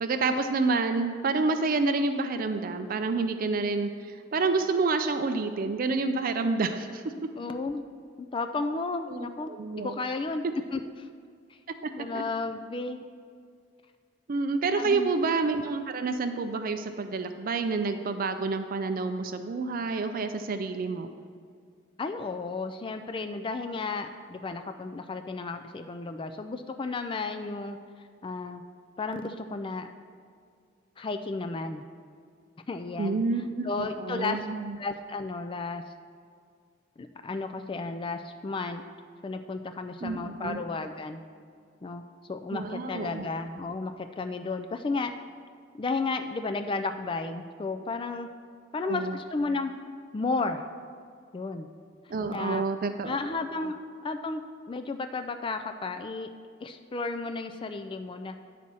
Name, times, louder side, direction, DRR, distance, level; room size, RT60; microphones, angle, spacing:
voice 1, 0.0-7.0 9.1-9.9 12.1-12.2 14.3-21.1 33.0-34.8 40.0-40.6 42.5-43.3 48.8-49.2 52.1-53.2 53.6-53.7, right 3 dB, 45° right, 8 dB, 0.4 m, -28 dB
voice 2, 7.4-7.8 8.2-9.5 9.8-10.4 10.7-11.1 11.5-11.6 12.0-13.0 14.8-15.1 22.0-27.8 28.2-28.6 29.0-29.9 31.0-31.8 32.7-33.2 33.6-34.5 34.8-35.8 37.0-38.8 39.2-41.2 41.8-42.0 42.3-45.1 45.7-48.3 48.7-49.7 50.1-50.6 51.3-51.7 52.1-52.6 53.0-53.8 54.0-54.4 54.7-56.3 56.6-58.3, left 3 dB, 25° left, 7 dB, 0.3 m, -33 dB
9.9 x 4.2 x 6.1 m, 2.2 s
head